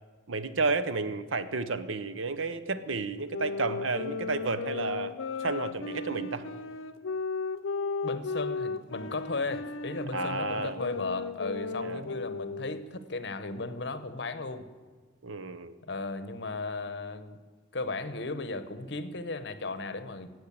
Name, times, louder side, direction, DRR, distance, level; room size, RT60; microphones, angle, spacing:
voice 1, 0.3-6.5 10.1-10.8 11.8-12.1 15.2-15.7, right 3 dB, 85° right, 13 dB, 0.8 m, -32 dB
sound 1, 3.3-13.0, left 4 dB, 90° left, 0.6 m, -35 dB
voice 2, 8.0-14.6 15.8-17.4 17.7-20.3, left 3 dB, 60° left, 12 dB, 0.9 m, -35 dB
16.5 x 6.3 x 8.6 m, 1.4 s
head